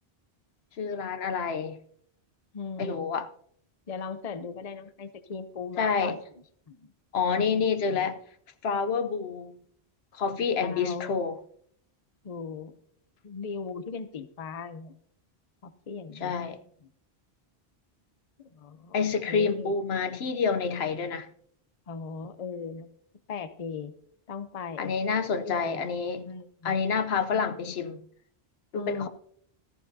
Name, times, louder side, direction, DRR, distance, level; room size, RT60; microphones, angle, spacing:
voice 1, 0.8-1.8 2.8-3.3 5.8-6.2 7.1-8.2 8.6-9.5 10.1-11.4 16.2-16.6 18.9-21.3 24.8-26.3 26.6-28.0 28.7-29.1, left 5 dB, 75° left, 1.0 m, -28 dB
voice 2, 2.5-3.2 3.9-6.2 6.7-6.9 7.5-8.1 10.6-11.2 12.2-12.7 13.2-14.9 15.6-16.3 18.4-18.9 19.3-19.7 21.9-22.9 23.3-23.9 24.3-24.9 25.4-25.8 26.3-26.8 27.2-27.4 28.7-29.1, left 5 dB, 40° left, 0.7 m, -38 dB
14.5 x 14.0 x 2.7 m
omnidirectional pair, 1.1 m